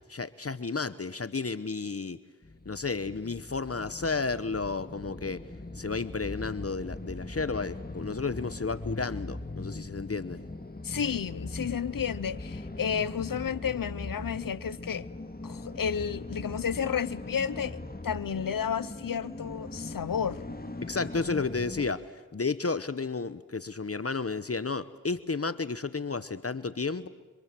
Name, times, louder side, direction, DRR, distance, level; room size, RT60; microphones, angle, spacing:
voice 1, 0.1-2.2 2.6-5.4 5.7-10.4 20.8-22.0 22.3-27.1, left 4 dB, 45° left, 1.0 m, -32 dB
sound 1, 2.4-21.9, left 2 dB, 30° left, 2.5 m, -40 dB
voice 2, 10.8-15.1 15.4-20.4, left 7 dB, 85° left, 0.8 m, -32 dB
26.5 x 26.5 x 7.6 m
cardioid pair, 45°, 32 cm